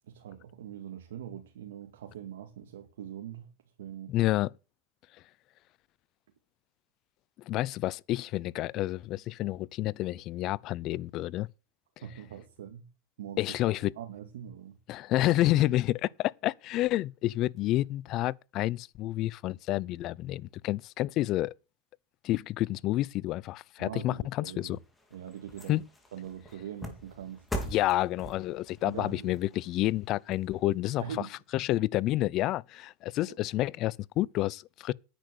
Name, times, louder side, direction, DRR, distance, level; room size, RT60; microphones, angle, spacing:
voice 1, 0.1-3.5 3.8-4.1 12.0-12.9 13.2-14.8 23.8-24.8 25.1-25.8 26.1-27.8 28.8-29.4 31.0-31.4 33.3-33.4, right 9 dB, 85° right, 2.0 m, -43 dB
voice 2, 4.1-4.5 7.5-11.5 13.4-13.9 14.9-21.5 22.2-24.8 25.7-25.8 27.7-31.0 31.5-34.9, left 16 dB, 45° left, 0.5 m, -29 dB
sound 1, 24.5-31.0 31.5-31.6, equal, 10° left, 3.6 m, -43 dB
10.0 x 8.6 x 6.5 m
supercardioid pair, 120°, 0 cm